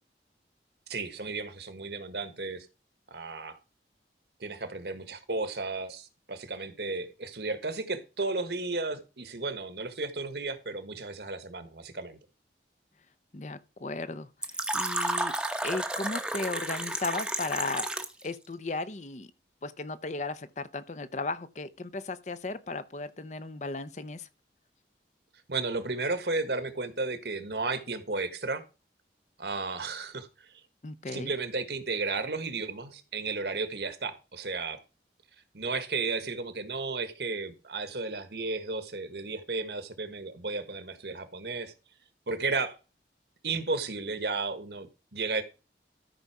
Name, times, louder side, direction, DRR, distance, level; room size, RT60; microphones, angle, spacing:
voice 1, 0.9-2.7 3.1-3.6 4.4-12.2 25.5-28.6 29.4-30.3 31.1-34.8 35.5-41.7 42.3-42.7 43.4-44.9 45.1-45.4, right 3 dB, 70° right, 1.4 m, -33 dB
voice 2, 13.3-15.3 15.6-17.9 18.2-19.3 19.6-24.3 30.8-31.3, left 3 dB, 40° left, 0.7 m, -36 dB
Fill (with liquid), 14.4-18.3, right 1 dB, 5° right, 0.8 m, -32 dB
13.0 x 5.5 x 4.8 m
head